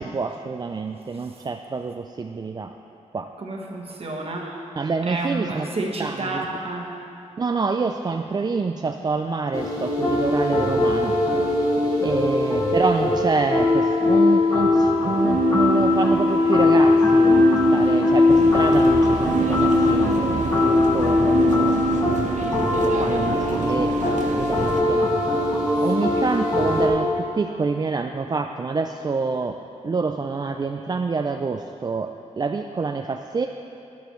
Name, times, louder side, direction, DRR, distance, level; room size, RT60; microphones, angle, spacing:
voice 1, 0.0-2.7 3.1-3.3 4.8-5.7 6.0-6.5 7.4-11.2 12.0-20.4 20.9-22.3 22.8-25.1 25.8-29.6 29.8-33.5, right 4 dB, 35° right, 4 dB, 0.4 m, -27 dB
voice 2, 3.4-4.6 5.0-6.9 12.0-12.6 26.0-26.3, right 2 dB, 50° right, -1 dB, 1.4 m, -31 dB
sound 1, 9.5-26.9, left 2 dB, 30° left, 2.0 m, -20 dB
sound 2, 18.3-24.8, right 4 dB, 75° right, 0.9 m, -30 dB
12.0 x 11.5 x 3.1 m, 2.7 s
wide cardioid pair, 95°, 12 cm